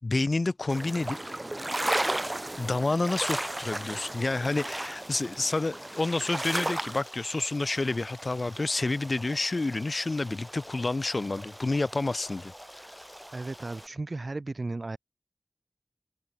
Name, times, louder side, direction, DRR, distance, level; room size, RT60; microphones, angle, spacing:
voice 1, 0.0-1.2 2.6-12.5, left 2 dB, 70° left, 0.5 m, -29 dB
sound 1, 0.7-7.0, right 1 dB, 35° right, 1.0 m, -33 dB
Stream, 1.9-13.9, equal, 5° right, 5.3 m, -47 dB
voice 2, 13.3-15.0, right 2 dB, 65° right, 0.8 m, -35 dB
open air
wide cardioid pair, 40°, 0 cm